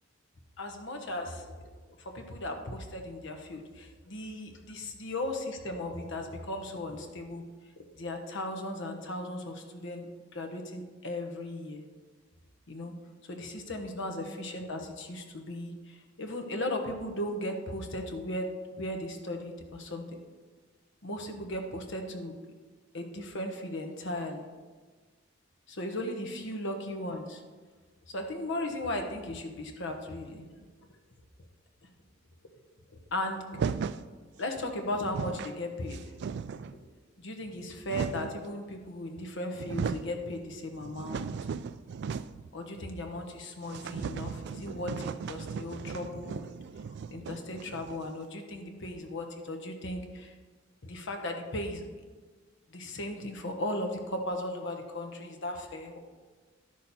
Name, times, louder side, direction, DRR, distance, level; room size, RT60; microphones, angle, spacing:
voice 1, 0.6-1.7 2.0-7.4 7.8-11.8 12.7-12.9 13.3-20.2 21.0-22.3 22.9-24.5 25.7-27.4 28.1-30.7 33.1-33.7 34.4-36.1 36.7-36.9 37.2-41.3 42.5-50.3 50.8-51.8 52.7-56.0, left 1 dB, 65° left, 4 dB, 1.2 m, -37 dB
sound 1, 33.5-34.1 34.7-34.8 35.0-35.5 35.9-36.8 37.5-38.4 39.2-39.3 39.5-40.1 40.5-42.5 42.8-42.9 43.2-43.3 43.7-48.2, right 6 dB, 60° right, 0.3 m, -36 dB
11.5 x 6.4 x 4.2 m, 1.4 s
head